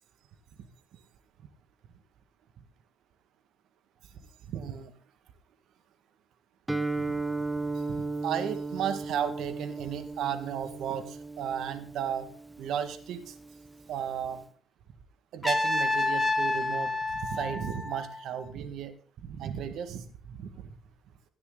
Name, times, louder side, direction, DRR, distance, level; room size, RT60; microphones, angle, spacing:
voice 1, 4.5-4.9 7.1-7.2 7.7-12.3 12.6-13.3 13.9-14.4 15.3-18.9 19.2-20.7, right 9 dB, 80° right, 9 dB, 1.8 m, -34 dB
Guitar, 6.7-14.4, right 3 dB, 10° right, 1.1 m, -36 dB
Trumpet, 15.4-18.4, left 2 dB, 10° left, 1.4 m, -29 dB
17.5 x 9.9 x 3.9 m, 0.43 s
cardioid pair, 90°, 0 cm